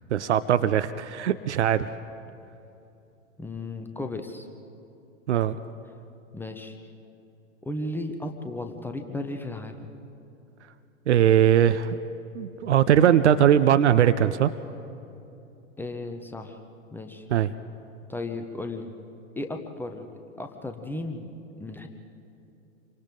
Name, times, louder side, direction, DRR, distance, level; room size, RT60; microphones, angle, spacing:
voice 1, 0.1-1.9 5.3-5.6 11.1-12.0 12.3-14.5 17.3-17.5, right 10 dB, 60° right, 12 dB, 0.7 m, -20 dB
voice 2, 3.4-4.5 6.3-6.8 7.6-9.9 15.8-16.6 16.9-17.3 18.1-18.9 19.4-20.1 20.4-21.3 21.6-21.9, left 2 dB, 5° left, 5 dB, 0.9 m, -35 dB
28.5 x 24.0 x 3.8 m, 2.8 s
figure-of-eight pair, 100°, 40 cm